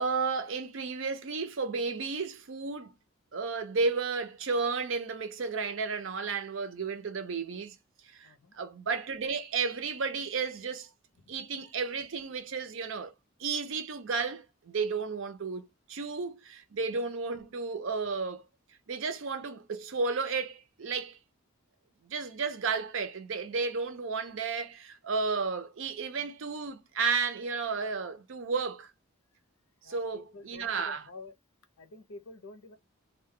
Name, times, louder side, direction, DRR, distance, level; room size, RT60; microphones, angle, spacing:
voice 1, 0.0-2.9 3.3-7.8 8.1-10.9 11.3-13.1 13.4-18.4 18.9-21.2 22.0-28.9 29.8-31.1, right 4 dB, 65° right, 0.5 m, -33 dB
voice 2, 8.2-8.5 11.2-11.4 25.5-25.6 29.8-31.3 31.8-32.8, left 3 dB, 80° left, 0.6 m, -49 dB
2.2 x 2.2 x 3.6 m
head